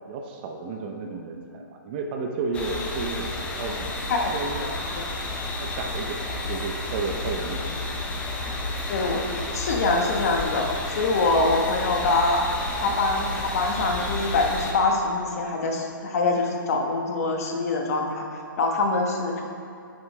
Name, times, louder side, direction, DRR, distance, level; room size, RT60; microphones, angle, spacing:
voice 1, 0.1-3.3 3.6-3.9 4.3-4.8 5.6-7.7, right 4 dB, 25° right, 2 dB, 0.6 m, -32 dB
sound 1, 2.5-14.7, left 2 dB, 10° left, 0.7 m, -31 dB
voice 2, 8.9-12.4 12.8-18.2 18.6-19.4, left 3 dB, 45° left, 2 dB, 1.1 m, -24 dB
10.5 x 6.0 x 3.3 m, 2.6 s
hypercardioid pair, 150°, 12 cm